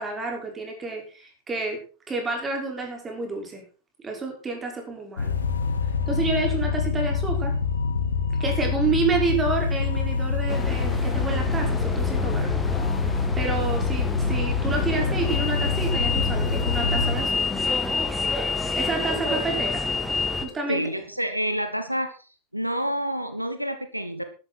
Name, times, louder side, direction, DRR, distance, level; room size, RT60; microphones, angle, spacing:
voice 1, 0.0-1.8 2.1-3.6 4.0-5.4 6.1-7.5 8.4-12.6 13.0-17.6 18.5-19.8 20.4-20.8, right 3 dB, 15° right, 1 dB, 5.7 m, -29 dB
sound 1, 5.2-17.2, left 5 dB, 70° left, 2.1 m, -25 dB
sound 2, 10.5-20.4, left 3 dB, 10° left, 2.1 m, -28 dB
voice 2, 20.7-22.1 22.5-24.2, equal, 90° right, 9 dB, 1.3 m, -28 dB
13.0 x 12.0 x 4.6 m, 0.37 s
figure-of-eight pair, 90°, 0 cm